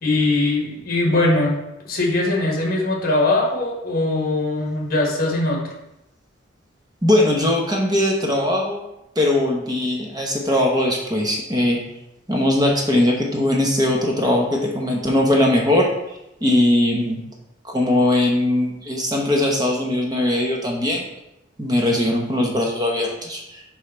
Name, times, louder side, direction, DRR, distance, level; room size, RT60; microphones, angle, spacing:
voice 1, 0.0-1.6 1.9-5.6, left 2 dB, 45° left, -1 dB, 1.7 m, -21 dB
voice 2, 7.0-8.8 9.2-11.8 12.3-15.9 16.4-17.2 17.6-21.1 21.6-23.6, left 1 dB, 20° right, 0 dB, 0.9 m, -20 dB
5.4 x 5.3 x 4.4 m, 0.88 s
head